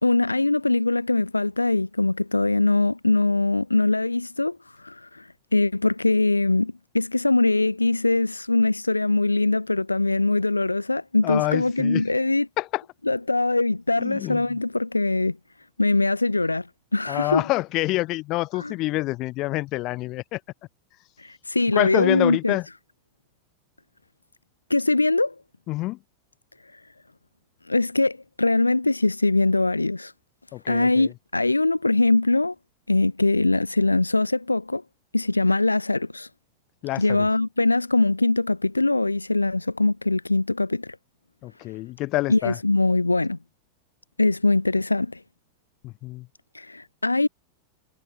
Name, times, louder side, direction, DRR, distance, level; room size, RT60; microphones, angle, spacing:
voice 1, 0.0-12.5 13.0-15.4 15.8-16.7 16.9-17.4 18.5-18.7 21.2-22.6 24.7-25.3 26.7-26.8 27.7-30.1 30.7-32.6 32.9-34.8 35.1-36.3 37.0-41.0 42.3-43.4 44.2-45.2 46.5-47.3, left 2 dB, 85° left, 2.2 m, -22 dB
voice 2, 11.2-12.0 12.6-12.8 14.0-14.4 17.1-20.4 21.7-22.7 25.7-26.0 30.5-31.1 36.8-37.3 41.4-42.6 45.8-46.3, left 19 dB, 40° left, 7.3 m, -27 dB
figure-of-eight pair, 90°, 0 cm